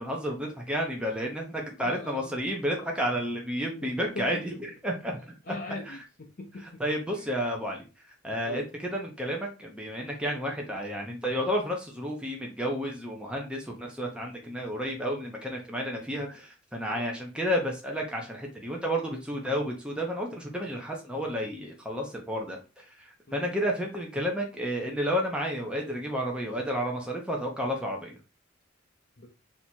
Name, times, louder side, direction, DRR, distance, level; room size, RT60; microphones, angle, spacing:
voice 1, 0.0-4.5 4.8-5.6 5.9-6.0 6.8-7.8 8.2-8.6 8.9-28.2, equal, 5° right, 0.8 m, -31 dB
voice 2, 1.8-2.4 3.7-4.4 5.5-6.8 7.1-7.3 8.4-8.7 16.9-17.1 23.3-23.5 29.2-29.3, left 2 dB, 45° left, 0.6 m, -41 dB
3.5 x 2.9 x 4.4 m
head